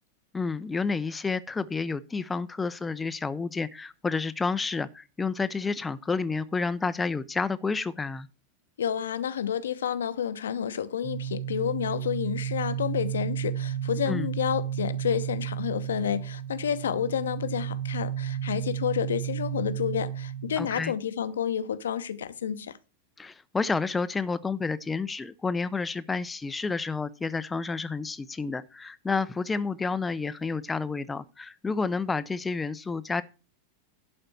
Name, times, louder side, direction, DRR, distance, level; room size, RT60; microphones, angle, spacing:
voice 1, 0.3-8.3 14.1-14.3 20.6-20.9 23.2-33.2, left 4 dB, 10° left, 0.5 m, -30 dB
voice 2, 8.8-22.8, left 8 dB, 65° left, 0.8 m, -30 dB
sound 1, 11.0-20.8, right 10 dB, 45° right, 1.0 m, -33 dB
11.5 x 4.3 x 7.6 m
figure-of-eight pair, 90°, 0 cm